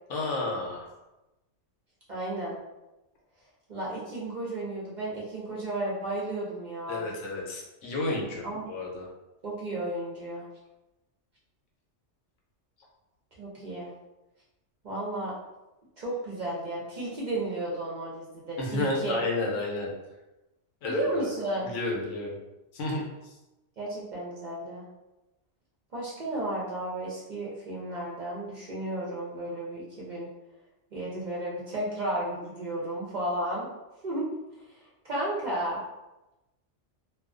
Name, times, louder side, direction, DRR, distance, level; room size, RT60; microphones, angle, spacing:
voice 1, 0.1-0.9 6.9-9.1 18.6-19.9 20.8-21.3 21.6-22.4 22.7-23.3, left 2 dB, 90° left, -2 dB, 1.0 m, -31 dB
voice 2, 2.1-2.6 3.7-7.1 8.4-8.7 9.4-10.5 13.4-13.9 14.8-15.3 16.0-19.2 20.8-21.7 23.8-24.9 25.9-30.3 30.9-33.7 34.0-34.3 34.7-34.8 35.0-35.8, right 1 dB, 55° right, -6 dB, 0.5 m, -33 dB
2.3 x 2.2 x 2.4 m, 0.99 s
omnidirectional pair, 1.3 m